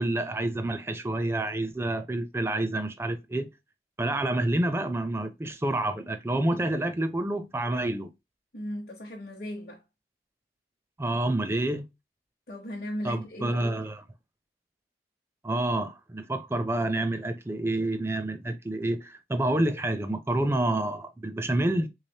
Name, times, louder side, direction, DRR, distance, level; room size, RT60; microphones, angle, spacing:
voice 1, 0.0-3.5 4.0-8.1 11.0-11.8 13.0-14.0 15.4-21.9, right 1 dB, 15° right, 0.4 m, -28 dB
voice 2, 8.5-9.8 12.5-13.8, equal, 55° left, 0.9 m, -37 dB
3.6 x 3.2 x 2.7 m
head